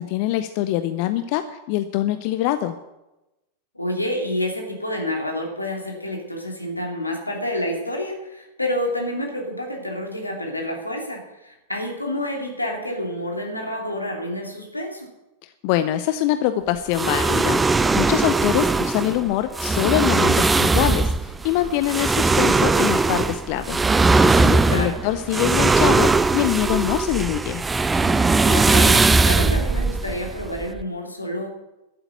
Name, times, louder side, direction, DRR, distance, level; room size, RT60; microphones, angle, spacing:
voice 1, 0.0-2.8 15.4-27.6, left 13 dB, 45° left, 11 dB, 0.7 m, -24 dB
voice 2, 3.7-15.1 24.7-25.0 28.4-31.5, left 1 dB, 85° left, 1 dB, 2.8 m, -28 dB
sound 1, 16.9-30.8, right 3 dB, 10° right, 0.5 m, -19 dB
12.5 x 8.0 x 9.1 m, 0.99 s
figure-of-eight pair, 90°, 0 cm